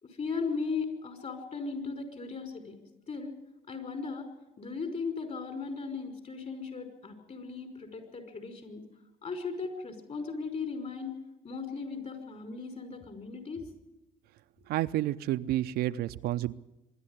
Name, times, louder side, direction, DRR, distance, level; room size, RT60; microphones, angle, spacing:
voice 1, 0.0-2.8 3.1-3.4 3.7-4.3 4.6-8.8 9.2-11.2 11.4-13.6, left 4 dB, 40° left, 6 dB, 5.3 m, -37 dB
voice 2, 14.7-16.5, right 14 dB, 65° right, 11 dB, 0.6 m, -30 dB
24.5 x 11.5 x 9.9 m, 0.97 s
hypercardioid pair, 70°, 18 cm